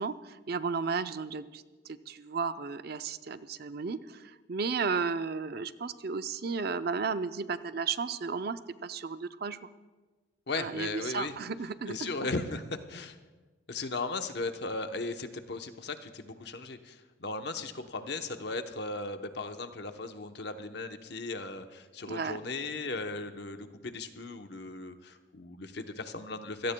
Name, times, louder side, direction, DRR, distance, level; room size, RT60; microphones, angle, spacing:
voice 1, 0.0-9.7 10.6-12.1 22.1-22.4, right 5 dB, 55° right, 12 dB, 0.5 m, -34 dB
voice 2, 10.5-11.3 11.9-12.6 12.9-13.2 13.7-26.7, left 3 dB, 60° left, 7 dB, 0.9 m, -37 dB
26.0 x 17.0 x 2.3 m, 1.3 s
head